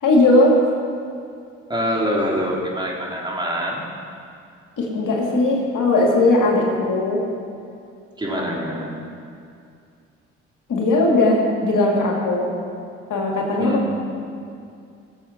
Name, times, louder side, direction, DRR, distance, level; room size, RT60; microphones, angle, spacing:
voice 1, 0.0-0.6 4.8-7.2 8.3-8.5 10.7-12.5 13.1-13.8, left 2 dB, 60° left, 0 dB, 2.3 m, -18 dB
voice 2, 1.7-3.8 8.2-8.9 13.6-13.8, equal, 10° right, -3 dB, 3.5 m, -24 dB
16.0 x 7.4 x 5.8 m, 2.4 s
hypercardioid pair, 55°, 36 cm